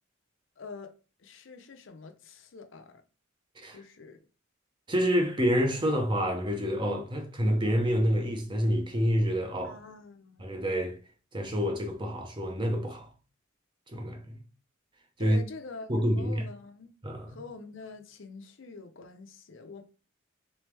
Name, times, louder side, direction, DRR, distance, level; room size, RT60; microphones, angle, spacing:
voice 1, 0.6-0.9 1.2-3.0 3.7-4.2 9.6-10.5 15.2-16.9 17.3-19.8, left 4 dB, 65° left, 0.6 m, -45 dB
voice 2, 4.9-9.8 10.4-10.9 11.3-13.1 13.9-14.2 15.2-15.4 15.9-16.5 17.0-17.4, equal, 25° right, 0.7 m, -27 dB
3.4 x 3.2 x 3.3 m
head